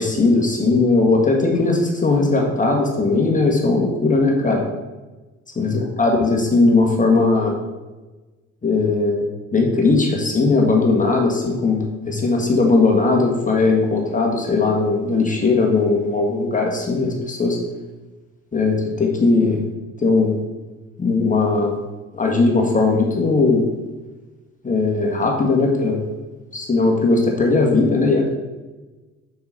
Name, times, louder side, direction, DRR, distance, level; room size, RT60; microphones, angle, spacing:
voice 1, 0.0-4.6 5.5-7.5 8.6-9.2 9.5-17.6 18.5-19.6 20.0-20.3 21.0-21.7 22.1-23.6 24.6-26.0 26.5-28.3, left 3 dB, 20° left, 0 dB, 1.7 m, -18 dB
6.7 x 6.6 x 4.3 m, 1.2 s
figure-of-eight pair, 50°, 35 cm